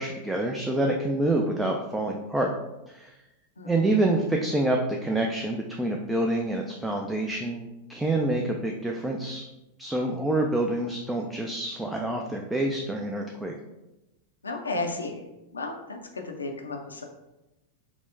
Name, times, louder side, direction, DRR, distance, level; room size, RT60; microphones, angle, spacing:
voice 1, 0.0-2.5 2.9-3.1 3.7-9.4 9.8-13.5, right 2 dB, 10° right, 1 dB, 0.3 m, -27 dB
voice 2, 14.4-15.2 15.5-17.0, left 2 dB, 75° left, 3 dB, 0.4 m, -33 dB
4.4 x 2.0 x 2.6 m, 0.97 s
figure-of-eight pair, 90°, 0 cm